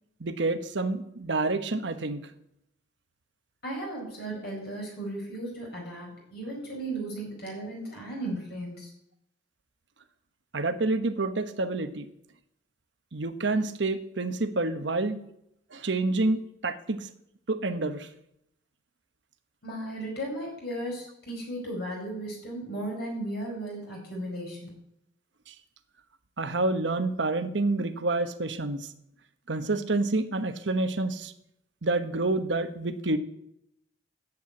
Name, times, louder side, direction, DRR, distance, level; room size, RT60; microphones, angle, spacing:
voice 1, 0.2-2.3 10.5-12.1 13.1-15.2 15.7-17.1 17.5-18.1 25.5-25.6 26.4-28.9 29.5-31.3 31.8-33.2, right 2 dB, 70° right, 9 dB, 1.1 m, -28 dB
voice 2, 3.6-8.9 19.6-24.7, right 1 dB, 60° left, 0 dB, 4.7 m, -35 dB
10.5 x 7.9 x 8.6 m, 0.78 s
head